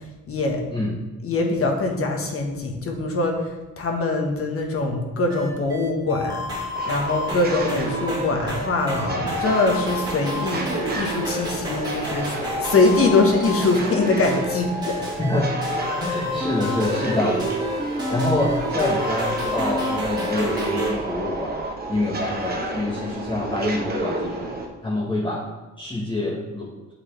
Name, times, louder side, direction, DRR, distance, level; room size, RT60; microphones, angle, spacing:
voice 1, 0.3-0.6 1.2-3.5 3.8-6.5 6.9-15.0, left 3 dB, 50° left, 2 dB, 1.3 m, -23 dB
sound 1, 5.3-20.9, left 1 dB, 15° right, 1.8 m, -30 dB
sound 2, 6.7-24.7, right 2 dB, 30° right, 1.0 m, -30 dB
voice 2, 15.2-15.6 16.0-17.5 18.1-21.5 21.9-24.5 24.8-25.4 25.8-26.7, left 2 dB, 15° left, -6 dB, 1.1 m, -26 dB
8.9 x 3.7 x 3.3 m, 1.1 s
cardioid pair, 90°, 30 cm